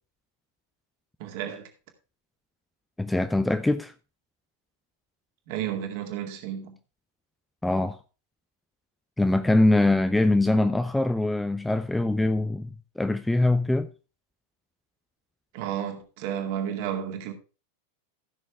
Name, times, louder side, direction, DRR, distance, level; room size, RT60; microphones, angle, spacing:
voice 1, 1.2-1.7 5.5-6.8 15.5-17.3, right 9 dB, 50° right, 2.2 m, -32 dB
voice 2, 3.0-3.9 7.6-8.0 9.2-12.7 13.0-13.9, left 2 dB, 5° left, 0.5 m, -23 dB
15.0 x 6.4 x 3.5 m
figure-of-eight pair, 90°, 0 cm